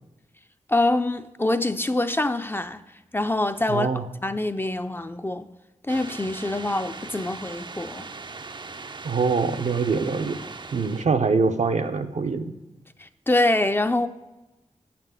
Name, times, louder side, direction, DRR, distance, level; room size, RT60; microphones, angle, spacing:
voice 1, 0.7-2.8 3.1-3.9 4.2-5.5 5.9-8.1 13.0-14.1, left 2 dB, 20° left, 0.4 m, -25 dB
voice 2, 3.7-4.0 9.0-10.4 10.7-12.5, right 4 dB, 75° right, 0.8 m, -24 dB
sound 1, 5.9-11.1, right 4 dB, 40° right, 0.4 m, -39 dB
8.8 x 5.9 x 7.3 m
wide cardioid pair, 105°, 12 cm